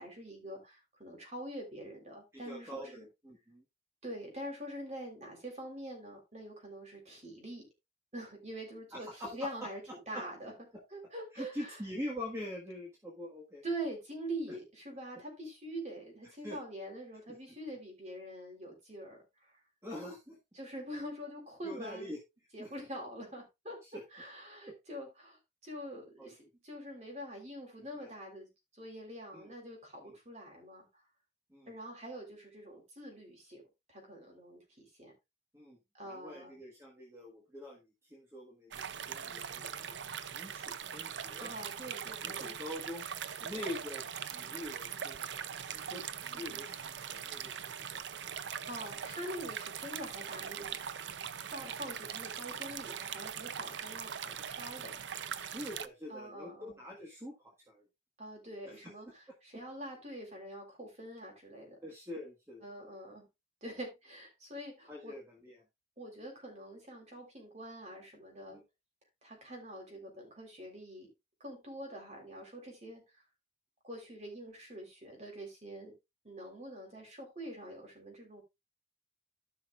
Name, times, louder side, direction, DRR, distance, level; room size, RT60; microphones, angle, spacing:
voice 1, 0.0-3.1 4.0-7.7 8.1-9.8 10.1-10.5 10.9-11.8 13.6-19.5 20.5-22.1 22.5-23.8 24.1-30.9 31.7-33.6 33.9-35.1 35.9-36.5 41.4-42.5 43.3-43.6 46.3-46.7 48.7-50.8 51.5-55.0 56.1-56.8 58.2-61.8 62.6-63.3 63.6-65.2 66.0-68.6 69.2-71.1 71.4-73.2 73.8-76.0 76.2-78.4, right 1 dB, 40° right, 3.8 m, -45 dB
voice 2, 2.3-3.0 3.2-3.6 8.9-9.7 10.1-10.2 11.3-13.6 16.4-16.6 19.8-20.4 21.6-22.2 22.6-22.7 23.9-24.0 24.7-24.8 26.2-26.3 28.0-28.1 29.3-29.5 30.0-30.1 31.5-31.7 35.5-35.8 36.0-41.5 42.2-43.1 43.4-45.4 45.7-47.5 55.4-57.8 58.7-58.8 61.8-62.7 64.9-65.5 68.5-68.6, left 1 dB, 15° right, 1.6 m, -44 dB
sound 1, 38.7-55.9, right 8 dB, 75° right, 0.5 m, -41 dB
14.5 x 5.6 x 2.4 m
head